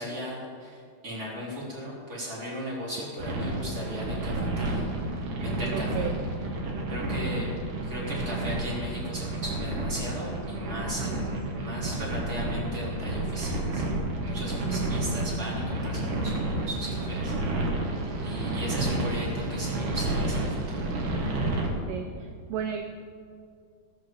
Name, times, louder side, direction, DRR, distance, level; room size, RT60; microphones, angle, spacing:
voice 1, 0.0-4.9 5.1-6.1 6.9-7.5 7.8-13.8 14.2-17.3 18.2-21.2, equal, 15° right, -6 dB, 3.5 m, -37 dB
sound 1, 3.2-21.7, right 2 dB, 55° right, 2.5 m, -30 dB
voice 2, 5.7-6.2 11.0-11.4 21.9-22.8, right 8 dB, 80° right, 5 dB, 2.3 m, -34 dB
18.5 x 6.3 x 7.3 m, 2.3 s
omnidirectional pair, 5.2 m